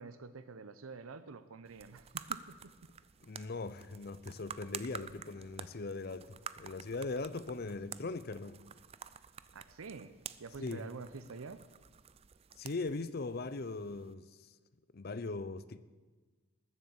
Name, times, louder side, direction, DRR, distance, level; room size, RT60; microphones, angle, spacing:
voice 1, 0.0-2.9 9.5-10.1 10.4-11.6, right 4 dB, 85° right, 0.6 m, -48 dB
sound 1, 1.6-14.1, right 8 dB, 30° right, 0.4 m, -49 dB
voice 2, 3.2-8.6 10.6-10.9 12.6-14.3 14.9-15.8, left 3 dB, 45° left, 0.6 m, -40 dB
20.0 x 7.5 x 7.1 m
head